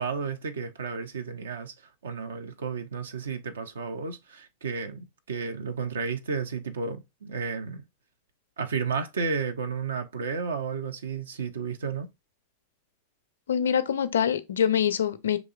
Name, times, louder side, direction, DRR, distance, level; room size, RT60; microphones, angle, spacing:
voice 1, 0.0-7.8 8.6-12.1, right 5 dB, 65° right, 0.5 m, -32 dB
voice 2, 13.5-15.4, left 8 dB, 65° left, 0.4 m, -24 dB
4.9 x 2.9 x 2.4 m
figure-of-eight pair, 90°, 0 cm